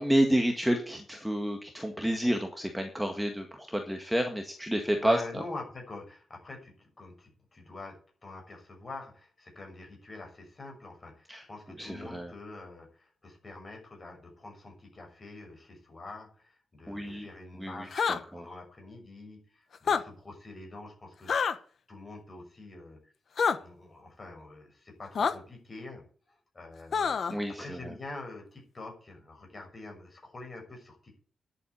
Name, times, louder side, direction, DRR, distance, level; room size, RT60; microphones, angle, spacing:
voice 1, 0.0-5.4 11.3-11.4 11.8-12.3 16.9-17.3 17.6-18.5 27.3-27.8, right 1 dB, 5° right, 3 dB, 1.8 m, -30 dB
voice 2, 5.0-21.6 21.9-23.1 23.5-31.2, left 2 dB, 30° left, 2 dB, 6.2 m, -46 dB
sound 1, 17.9-18.2 19.8-20.0 21.3-21.5 23.4-23.6 25.2-25.3 26.9-27.3, left 6 dB, 55° left, 1.2 m, -26 dB
10.5 x 8.1 x 8.2 m, 0.42 s
wide cardioid pair, 140°, 0 cm